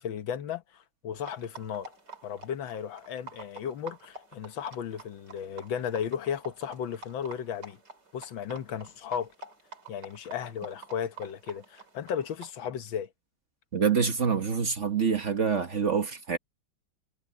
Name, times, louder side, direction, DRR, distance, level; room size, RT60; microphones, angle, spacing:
voice 1, 0.0-1.9 2.2-7.8 8.1-9.3 9.9-13.1, left 8 dB, 80° left, 1.8 m, -35 dB
sound 1, 1.2-12.5, right 2 dB, 60° right, 5.3 m, -49 dB
voice 2, 13.7-16.4, right 6 dB, 40° right, 1.4 m, -26 dB
omnidirectional pair, 2.1 m